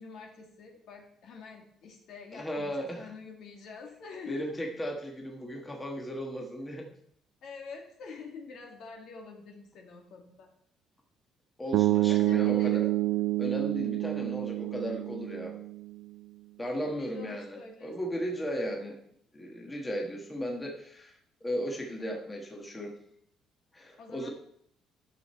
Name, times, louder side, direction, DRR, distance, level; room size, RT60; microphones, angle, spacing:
voice 1, 0.0-4.6 7.4-10.5 12.1-12.9 16.7-17.9 24.0-24.3, left 5 dB, 60° left, 2 dB, 2.1 m, -46 dB
voice 2, 2.3-3.1 4.3-6.9 11.6-12.9 13.4-15.5 16.6-19.0 19.3-22.9 23.7-24.3, equal, 15° left, 1 dB, 1.5 m, -36 dB
sound 1, 11.7-15.9, right 17 dB, 85° right, 0.4 m, -28 dB
11.5 x 6.6 x 4.4 m, 0.69 s
cardioid pair, 145°, 0 cm